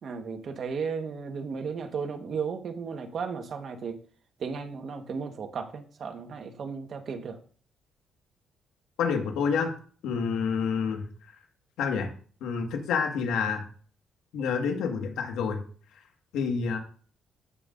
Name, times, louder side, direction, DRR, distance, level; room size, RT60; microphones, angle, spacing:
voice 1, 0.0-4.0 4.4-7.4, right 5 dB, 55° right, 6 dB, 1.4 m, -35 dB
voice 2, 9.0-9.7 10.0-11.1 11.8-12.1 12.4-13.6 14.3-15.6 16.3-16.8, left 6 dB, 90° left, 3 dB, 1.7 m, -28 dB
15.0 x 5.4 x 2.6 m, 0.43 s
cardioid pair, 90°, 0 cm